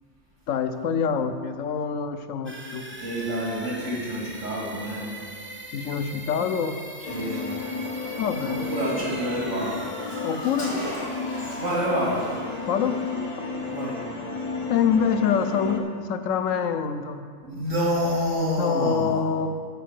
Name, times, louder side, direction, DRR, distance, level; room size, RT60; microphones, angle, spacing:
voice 1, 0.5-2.8 5.7-6.8 8.2-8.7 10.2-10.7 12.7-13.0 14.7-17.2 18.6-19.5, left 7 dB, 90° left, 8 dB, 1.0 m, -25 dB
sound 1, 2.5-16.2, right 1 dB, 15° right, 0.4 m, -41 dB
voice 2, 3.0-5.1 7.1-7.5 8.7-9.7 11.5-12.2 13.7-13.9 17.4-19.1, equal, 80° right, -6 dB, 3.4 m, -27 dB
sound 2, 7.0-15.8, left 4 dB, 40° left, 0.7 m, -33 dB
Car, 8.2-8.3 8.6-8.7 8.9-11.8 12.1-12.4, equal, 55° left, 3.3 m, -38 dB
9.0 x 4.7 x 7.6 m, 2.1 s
omnidirectional pair, 1.3 m